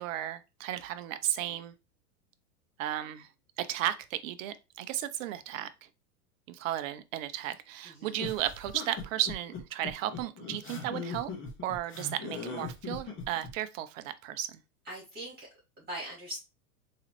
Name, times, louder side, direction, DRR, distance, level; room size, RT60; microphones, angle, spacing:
voice 1, 0.0-1.7 2.8-3.3 3.6-5.7 6.5-11.3 11.6-14.6, right 12 dB, 55° right, 0.6 m, -34 dB
voice 2, 7.8-8.3 14.8-15.5 15.8-16.4, right 1 dB, 20° right, 2.3 m, -41 dB
sound 1, 8.2-13.5, left 5 dB, 25° left, 1.5 m, -40 dB
3.7 x 3.2 x 2.9 m
hypercardioid pair, 105°, 46 cm